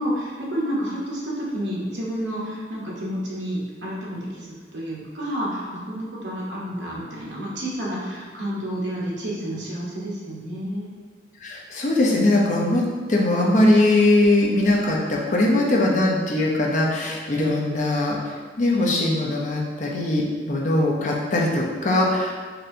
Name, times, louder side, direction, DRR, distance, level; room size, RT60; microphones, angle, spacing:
voice 1, 0.0-10.9, equal, 80° right, -5 dB, 0.9 m, -30 dB
voice 2, 11.4-12.8 13.1-18.2 18.6-22.3, left 1 dB, 45° left, -2 dB, 0.5 m, -20 dB
4.1 x 2.6 x 2.6 m, 1.6 s
head